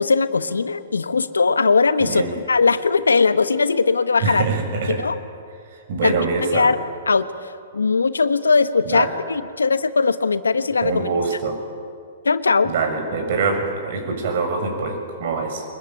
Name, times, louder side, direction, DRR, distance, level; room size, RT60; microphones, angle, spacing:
voice 1, 0.0-2.2 2.5-4.4 4.9-5.2 6.0-6.3 6.5-6.8 7.1-11.1 12.2-12.7, left 4 dB, 85° left, 12 dB, 1.2 m, -19 dB
voice 2, 2.0-2.3 4.2-5.0 5.7-6.7 8.8-9.1 10.8-11.6 12.6-15.6, right 4 dB, 55° right, 4 dB, 6.8 m, -24 dB
24.5 x 21.5 x 9.1 m, 2.3 s
hypercardioid pair, 115°, 0 cm